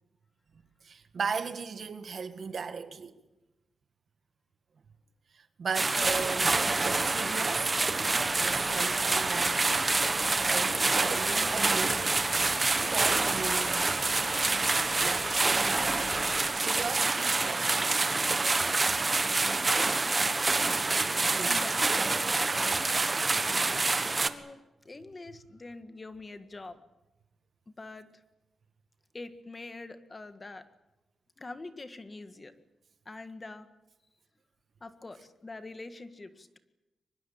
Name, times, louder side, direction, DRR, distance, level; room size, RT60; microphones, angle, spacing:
voice 1, 0.8-3.2 5.3-9.9 10.4-12.3 12.9-13.9 15.0-15.3 16.6-18.0 20.5-20.7 21.3-21.6, right 5 dB, 55° right, 1.9 m, -37 dB
sound 1, 5.7-24.3, right 3 dB, 25° right, 1.4 m, -27 dB
sound 2, 6.0-16.4, left 3 dB, 55° left, 6.9 m, -44 dB
voice 2, 21.4-22.8 24.2-26.8 27.8-28.1 29.1-30.7 31.4-32.5 33.1-33.7 34.8-36.6, left 3 dB, 25° left, 1.7 m, -44 dB
24.0 x 21.5 x 8.7 m
wide cardioid pair, 125°, 0 cm